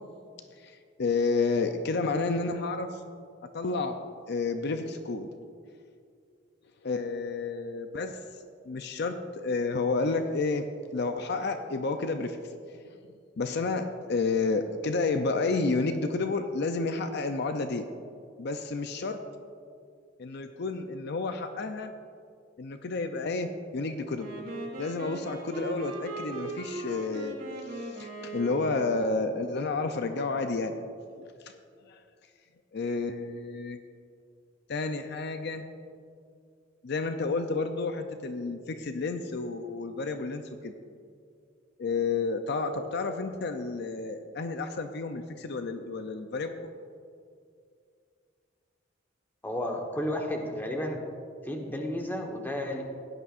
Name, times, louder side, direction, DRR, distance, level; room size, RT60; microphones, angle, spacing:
voice 1, 0.6-3.0 3.5-4.0 4.3-5.3 6.8-8.2 8.7-10.7 10.9-12.4 12.7-12.9 13.4-17.9 18.4-19.2 20.2-21.9 22.6-24.3 24.8-27.4 27.7-30.8 31.2-31.5 31.9-32.0 32.7-33.8 34.7-35.6 36.8-40.7 41.8-46.6, left 3 dB, 60° left, 7 dB, 0.5 m, -30 dB
Wind instrument woodwind instrument, 24.1-29.3, right 2 dB, 55° right, 2.9 m, -39 dB
voice 2, 49.4-51.0 51.4-52.8, left 1 dB, 10° left, 1 dB, 1.2 m, -32 dB
16.5 x 11.0 x 2.5 m, 2.3 s
head